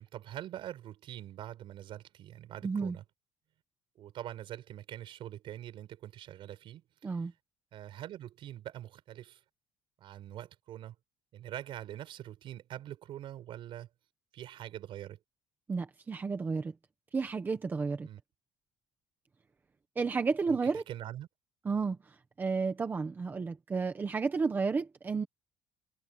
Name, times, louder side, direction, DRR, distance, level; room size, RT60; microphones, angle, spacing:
voice 1, 0.0-3.0 4.0-7.3 7.7-9.4 10.0-10.9 11.3-13.9 14.3-15.2 18.0-18.2 20.5-21.3, right 12 dB, 50° right, 5.9 m, -44 dB
voice 2, 2.6-3.0 7.0-7.3 15.7-16.7 17.1-18.1 19.9-20.8 21.6-25.3, right 4 dB, 15° right, 1.4 m, -32 dB
cardioid pair, 175°, 11 cm